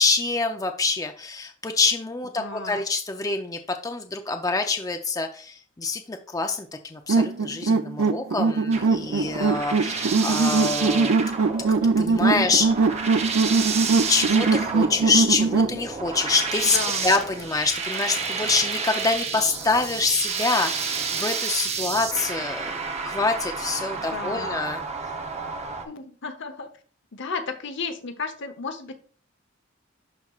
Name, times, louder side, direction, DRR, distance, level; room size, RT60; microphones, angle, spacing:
voice 1, 0.0-11.1 12.0-12.7 14.1-16.8 17.0-22.8 23.0-24.8, left 3 dB, 20° left, 5 dB, 0.5 m, -26 dB
voice 2, 2.4-2.9 10.1-10.2 16.6-17.1 24.0-24.8 25.8-26.7 27.1-28.9, left 4 dB, 65° left, 7 dB, 0.9 m, -34 dB
sound 1, 7.1-15.8, right 4 dB, 75° right, 0.5 m, -22 dB
sound 2, 8.7-25.8, right 5 dB, 35° right, 0.8 m, -30 dB
12.0 x 4.2 x 2.4 m, 0.41 s
head